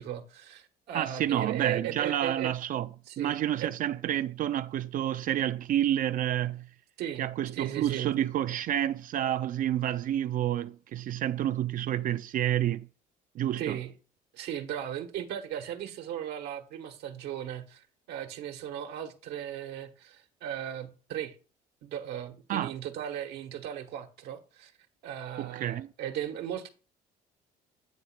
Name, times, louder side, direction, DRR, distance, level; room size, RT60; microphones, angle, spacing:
voice 1, 0.0-2.5 3.1-3.7 7.0-8.1 13.6-13.9 14.3-21.4 21.8-24.7 25.0-26.7, right 10 dB, 80° right, 1.1 m, -37 dB
voice 2, 0.9-2.9 3.2-6.7 7.2-12.9 13.4-13.8 22.5-22.7 25.4-25.9, right 11 dB, 55° right, 0.4 m, -29 dB
9.1 x 3.1 x 5.9 m
cardioid pair, 110°, 17 cm